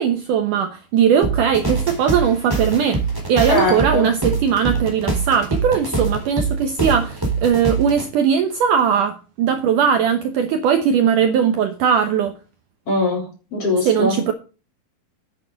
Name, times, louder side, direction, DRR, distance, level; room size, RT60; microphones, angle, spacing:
voice 1, 0.0-3.0 3.3-12.3 13.9-14.3, right 7 dB, 85° right, 1.8 m, -19 dB
sound 1, 1.2-8.0, right 3 dB, 5° right, 3.5 m, -24 dB
voice 2, 3.5-4.1 12.9-14.2, left 2 dB, 35° left, 4.4 m, -21 dB
10.0 x 9.1 x 3.9 m
omnidirectional pair, 5.0 m